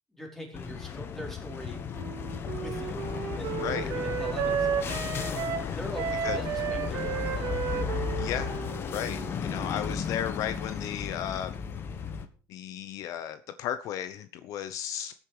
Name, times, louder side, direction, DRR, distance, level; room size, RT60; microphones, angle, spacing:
voice 1, 0.1-1.8 2.6-3.0 3.4-3.5 3.8-4.7 5.7-7.7, equal, 5° left, 0 dB, 4.5 m, -42 dB
sound 1, 0.5-12.3, left 6 dB, 35° left, 1.3 m, -34 dB
Wind instrument woodwind instrument, 1.9-10.0, right 8 dB, 55° right, 1.8 m, -33 dB
voice 2, 8.2-8.5 8.9-11.6 12.5-15.1, left 10 dB, 55° left, 11 dB, 0.9 m, -34 dB
15.0 x 8.8 x 5.0 m, 0.39 s
cardioid pair, 145°, 7 cm